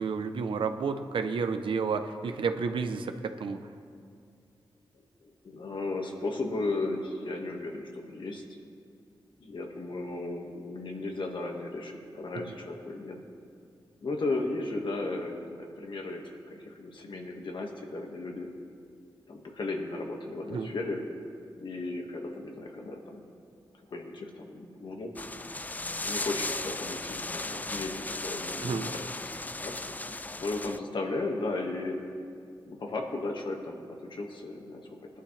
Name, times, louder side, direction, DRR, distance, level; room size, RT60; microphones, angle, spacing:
voice 1, 0.0-3.6 20.5-20.7 28.6-28.9, right 5 dB, 85° right, 8 dB, 0.7 m, -31 dB
voice 2, 4.9-8.4 9.4-13.2 14.0-18.5 19.3-21.0 21.6-23.3 23.9-25.1 26.0-29.9 30.4-32.0 32.7-35.2, left 2 dB, 70° left, 1 dB, 1.7 m, -35 dB
sound 1, 25.2-30.8, left 2 dB, 20° left, 0.4 m, -36 dB
20.0 x 11.0 x 3.3 m, 2.3 s
cardioid pair, 75°, 9 cm